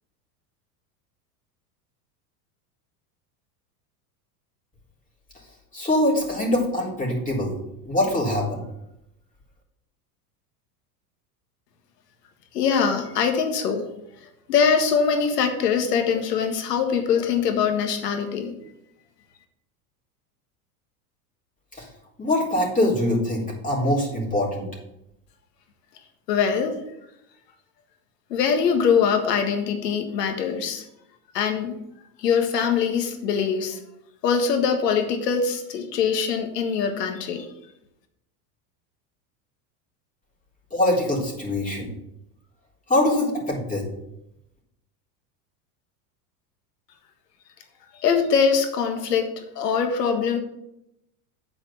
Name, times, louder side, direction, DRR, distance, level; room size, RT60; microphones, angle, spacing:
voice 1, 5.7-7.5 7.8-8.6 21.7-21.9 22.2-24.7 40.7-41.9 42.9-43.8, left 1 dB, 15° left, -3 dB, 3.7 m, -23 dB
voice 2, 12.5-13.9 14.5-18.5 26.3-26.8 28.3-30.8 31.3-31.7 32.2-33.8 34.2-37.5 47.9-50.4, left 6 dB, 90° left, 5 dB, 1.7 m, -23 dB
8.9 x 5.1 x 6.9 m, 0.84 s
supercardioid pair, 105°, 47 cm